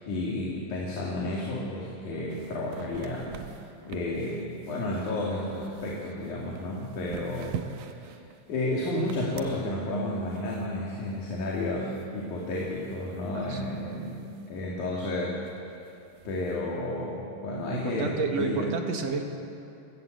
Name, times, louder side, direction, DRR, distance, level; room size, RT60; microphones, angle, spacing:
voice 1, 0.0-3.6 3.9-8.1 8.5-15.4 16.3-18.7, left 1 dB, 75° left, -3 dB, 4.0 m, -32 dB
sound 1, 2.3-14.7 15.0-15.1 15.3-16.6, right 7 dB, 90° right, 2.4 m, -46 dB
voice 2, 13.3-13.7 17.7-19.2, right 4 dB, 55° right, 3 dB, 2.8 m, -30 dB
29.0 x 15.0 x 8.0 m, 2.7 s
omnidirectional pair, 3.6 m